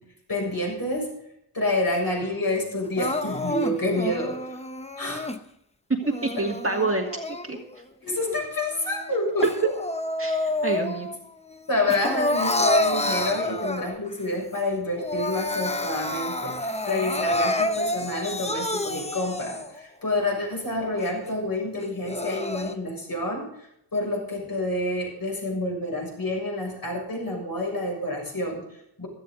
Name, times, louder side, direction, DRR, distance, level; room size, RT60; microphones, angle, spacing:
voice 1, 0.3-1.1 1.5-4.6 5.0-5.2 6.3-6.4 8.0-9.5 11.7-29.1, left 2 dB, 50° left, -1 dB, 6.9 m, -28 dB
Crying sobbing, 3.0-5.4 6.0-7.8 8.3-11.2 11.5-14.2 14.6-14.7 15.0-19.8 20.3-20.4 21.0-21.1 21.8-22.7, left 1 dB, 15° left, 0.8 m, -29 dB
voice 2, 6.1-7.1 7.4-7.6 10.2-11.1, right 2 dB, 30° right, 1 dB, 2.0 m, -27 dB
15.5 x 13.0 x 4.0 m, 0.74 s
wide cardioid pair, 100°, 45 cm